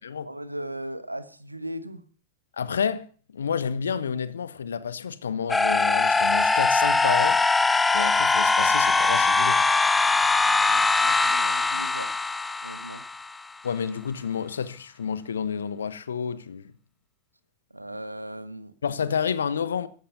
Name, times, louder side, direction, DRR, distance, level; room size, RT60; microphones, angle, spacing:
voice 1, 0.2-2.0 10.3-12.1 12.6-13.0 17.7-18.7, right 1 dB, 85° right, 1.5 m, -38 dB
voice 2, 2.6-3.1 3.3-7.4 7.9-9.6 13.6-16.7 18.8-19.9, left 7 dB, 70° left, 1.2 m, -29 dB
sound 1, 5.5-13.4, left 3 dB, 10° left, 0.7 m, -22 dB
15.0 x 11.0 x 7.3 m
figure-of-eight pair, 90°, 0 cm